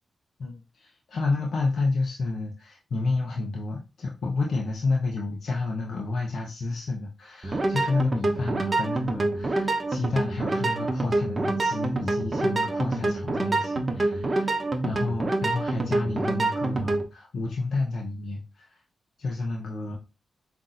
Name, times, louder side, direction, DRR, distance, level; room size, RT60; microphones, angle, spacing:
voice 1, 0.4-18.8 19.2-20.0, left 3 dB, 70° left, -1 dB, 0.7 m, -30 dB
sound 1, 7.4-17.0, right 2 dB, 40° right, 0.8 m, -26 dB
5.5 x 2.6 x 2.5 m, 0.28 s
cardioid pair, 50°, 0 cm